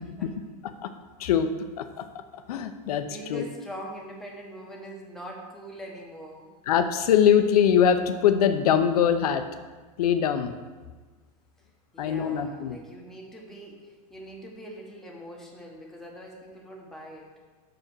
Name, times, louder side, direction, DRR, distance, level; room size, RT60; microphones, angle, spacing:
voice 1, 1.2-1.5 1.8-2.1 2.5-3.4 6.7-9.4 10.0-10.5 12.0-12.8, left 8 dB, 75° left, 9 dB, 0.8 m, -22 dB
voice 2, 3.0-6.5 11.9-17.3, equal, ahead, -2 dB, 1.0 m, -42 dB
6.4 x 5.0 x 6.2 m, 1.3 s
supercardioid pair, 150°, 20 cm